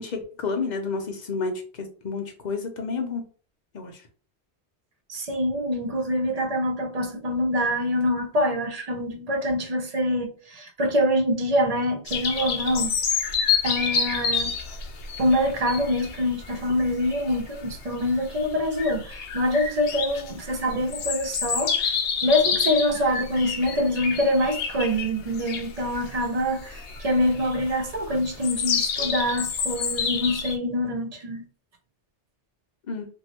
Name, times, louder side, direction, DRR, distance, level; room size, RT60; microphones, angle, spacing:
voice 1, 0.0-3.2 3.7-4.0 32.9-33.1, left 4 dB, 50° left, 0.7 m, -30 dB
voice 2, 5.1-13.0 13.6-14.5 15.2-21.9 22.2-31.4, left 1 dB, 45° right, 0.6 m, -25 dB
sound 1, 12.1-30.6, left 6 dB, 80° left, 0.9 m, -28 dB
3.0 x 2.6 x 2.8 m
omnidirectional pair, 1.2 m